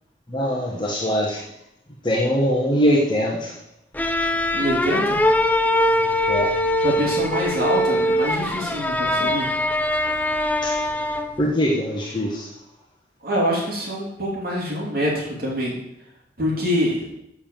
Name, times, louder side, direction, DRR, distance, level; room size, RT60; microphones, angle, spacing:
voice 1, 0.3-1.4 2.0-3.6 6.3-6.5 10.6-10.8 11.4-12.5, equal, 25° left, -2 dB, 1.3 m, -22 dB
sound 1, 3.9-11.4, left 1 dB, 10° left, 0.5 m, -22 dB
voice 2, 4.5-5.2 6.8-9.5 13.2-15.7 16.4-17.0, equal, 50° right, -4 dB, 3.0 m, -25 dB
7.2 x 7.0 x 7.5 m, 0.80 s
head